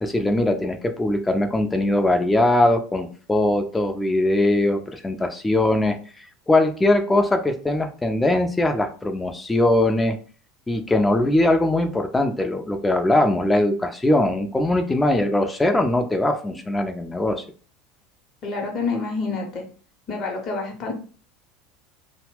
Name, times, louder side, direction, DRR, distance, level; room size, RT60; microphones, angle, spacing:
voice 1, 0.0-6.0 6.5-10.2 10.7-17.4, left 1 dB, 10° left, 6 dB, 0.4 m, -21 dB
voice 2, 18.4-19.6 20.1-20.9, left 4 dB, 40° left, 1 dB, 0.8 m, -27 dB
2.8 x 2.0 x 3.1 m, 0.39 s
figure-of-eight pair, 75°, 0 cm